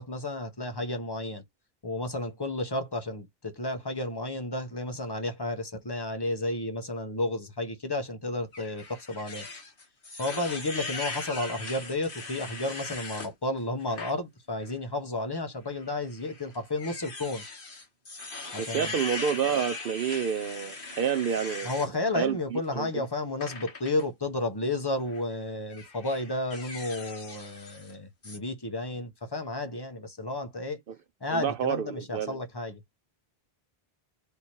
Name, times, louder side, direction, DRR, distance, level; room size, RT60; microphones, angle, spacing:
voice 1, 0.0-1.4 1.8-9.5 10.2-17.4 18.5-19.0 21.6-30.8 31.2-32.8, left 2 dB, 25° left, 1.0 m, -32 dB
sound 1, 8.5-13.3 13.8-14.1 14.6-14.7 15.8-21.9 23.4-24.0 25.0-25.2 25.7-27.9 28.2-28.4, left 3 dB, 60° left, 1.6 m, -40 dB
voice 2, 18.6-21.7 22.1-23.0 31.3-32.4, right 8 dB, 65° right, 0.7 m, -29 dB
3.4 x 3.0 x 4.3 m
omnidirectional pair, 1.0 m